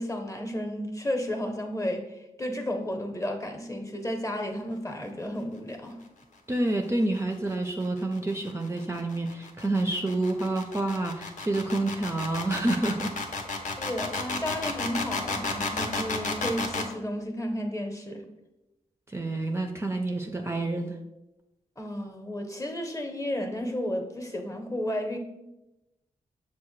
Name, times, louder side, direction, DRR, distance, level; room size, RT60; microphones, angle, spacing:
voice 1, 0.0-6.0 13.8-18.2 21.8-25.2, left 1 dB, 20° left, 4 dB, 0.8 m, -32 dB
voice 2, 6.5-13.1 19.1-21.0, right 2 dB, 20° right, 2 dB, 0.4 m, -28 dB
sound 1, 7.7-16.9, left 3 dB, 65° left, 0.7 m, -32 dB
6.3 x 2.1 x 3.1 m, 0.96 s
cardioid pair, 45°, 14 cm